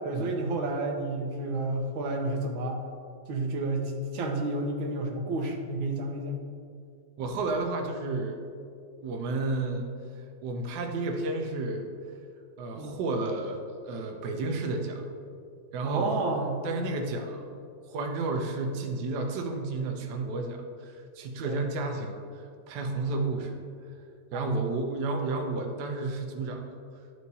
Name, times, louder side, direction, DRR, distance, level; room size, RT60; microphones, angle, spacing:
voice 1, 0.0-2.8 3.3-6.4 12.8-13.0 15.8-16.6 21.4-21.7 23.1-23.3 24.3-24.5, right 2 dB, 85° right, 2 dB, 1.6 m, -31 dB
voice 2, 7.2-8.4 9.0-9.8 10.4-11.9 12.6-15.0 15.7-16.2 16.6-17.5 17.9-23.6 24.3-26.6, right 3 dB, 70° right, 3 dB, 1.2 m, -31 dB
11.5 x 4.6 x 2.7 m, 2.4 s
omnidirectional pair, 2.1 m